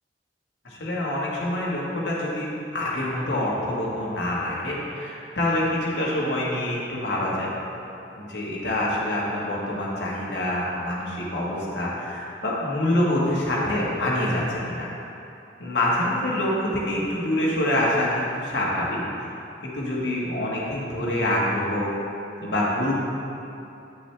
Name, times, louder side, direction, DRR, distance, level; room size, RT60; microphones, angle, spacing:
voice 1, 0.6-7.5 8.1-14.9 15.6-19.3 19.6-21.9 22.4-23.0, left 1 dB, 90° left, -5 dB, 1.5 m, -26 dB
7.9 x 6.2 x 3.4 m, 2.7 s
head